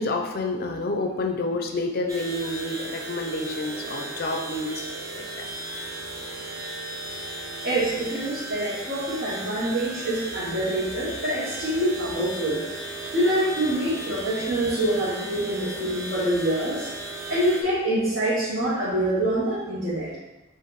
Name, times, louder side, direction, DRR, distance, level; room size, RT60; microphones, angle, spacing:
voice 1, 0.0-5.5, left 2 dB, 45° left, 4 dB, 0.4 m, -29 dB
sound 1, 2.1-17.6, right 2 dB, 15° right, 0.6 m, -36 dB
voice 2, 7.6-12.6 13.1-16.9 17.3-20.1, right 1 dB, 50° right, -10 dB, 1.2 m, -25 dB
5.2 x 2.5 x 4.0 m, 1.0 s
head